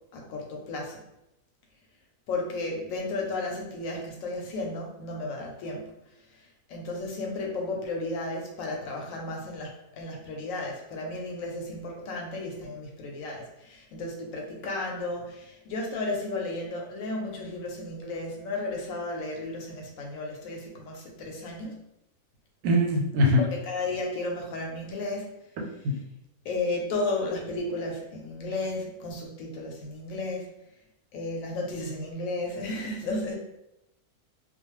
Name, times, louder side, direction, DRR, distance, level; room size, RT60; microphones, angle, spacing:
voice 1, 0.1-1.0 2.3-5.9 6.3-6.4 6.7-21.8 23.4-25.3 26.4-30.5 31.1-33.4, left 2 dB, 70° left, 0 dB, 0.9 m, -33 dB
voice 2, 22.6-23.4 25.8-25.9, left 1 dB, 90° right, 0 dB, 1.2 m, -22 dB
2.4 x 2.3 x 3.0 m, 0.87 s
omnidirectional pair, 1.6 m